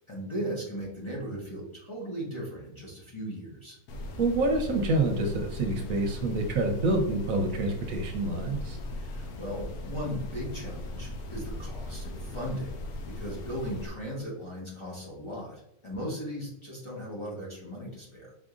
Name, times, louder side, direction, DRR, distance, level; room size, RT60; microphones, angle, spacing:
voice 1, 0.1-3.8 8.9-12.7 13.1-18.3, equal, 20° left, -5 dB, 1.2 m, -37 dB
sound 1, 3.9-13.9, left 1 dB, 85° left, 1.2 m, -38 dB
voice 2, 4.2-8.8, right 2 dB, 65° right, 3 dB, 1.1 m, -27 dB
5.0 x 4.1 x 2.5 m, 0.83 s
omnidirectional pair, 1.6 m